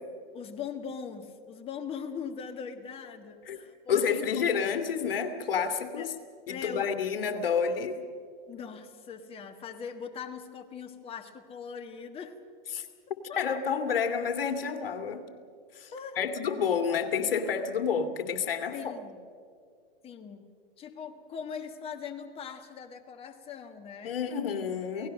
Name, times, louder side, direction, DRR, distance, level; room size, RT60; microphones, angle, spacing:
voice 1, 0.3-4.8 5.9-6.1 6.5-6.8 8.5-12.4 13.3-13.4 15.9-16.2 16.9-17.0 18.7-19.2 20.0-20.5 20.8-24.1 24.9-25.1, left 6 dB, 20° left, 5 dB, 1.6 m, -41 dB
voice 2, 3.9-6.1 6.5-8.0 12.7-12.9 13.4-15.3 15.7-18.9 24.0-25.1, left 6 dB, 70° left, 8 dB, 2.4 m, -29 dB
28.5 x 18.0 x 6.5 m, 2.3 s
hypercardioid pair, 140°, 30 cm